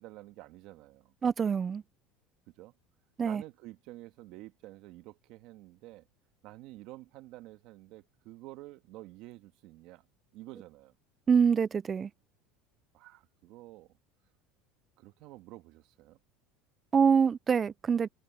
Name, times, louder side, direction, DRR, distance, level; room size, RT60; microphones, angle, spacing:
voice 1, 0.0-1.1 2.6-2.7 3.2-6.1 6.4-10.0 10.3-10.9 12.9-14.0 15.0-16.2, right 18 dB, 55° right, 1.8 m, -49 dB
voice 2, 1.2-1.8 3.2-3.4 11.3-12.1 16.9-18.1, right 6 dB, 20° right, 0.3 m, -25 dB
cardioid pair, 145°, 0 cm